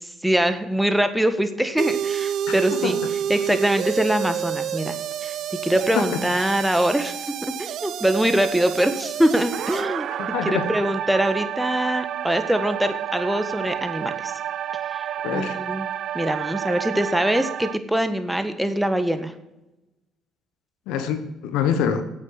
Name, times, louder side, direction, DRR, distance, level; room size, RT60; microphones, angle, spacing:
voice 1, 0.2-3.0 3.3-5.0 5.2-5.3 5.6-10.1 10.4-14.3 14.9-15.9 16.1-19.3, right 1 dB, 5° right, 9 dB, 1.5 m, -23 dB
sound 1, 1.8-17.8, right 10 dB, 65° right, 0.3 m, -29 dB
voice 2, 2.5-3.0 5.9-6.2 10.2-10.7 15.2-15.6 20.9-22.0, left 7 dB, 80° left, 9 dB, 1.4 m, -25 dB
8.9 x 8.4 x 8.3 m, 0.95 s
supercardioid pair, 65°, 0 cm